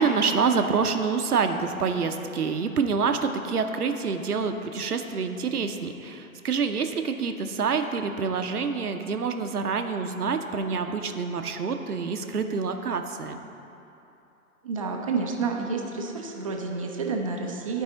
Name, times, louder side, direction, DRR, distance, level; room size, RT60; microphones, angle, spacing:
voice 1, 0.0-13.4, right 5 dB, 85° right, 6 dB, 0.7 m, -27 dB
voice 2, 14.6-17.8, right 4 dB, 25° right, 1 dB, 0.4 m, -29 dB
11.5 x 4.7 x 3.9 m, 2.9 s
figure-of-eight pair, 115°, 44 cm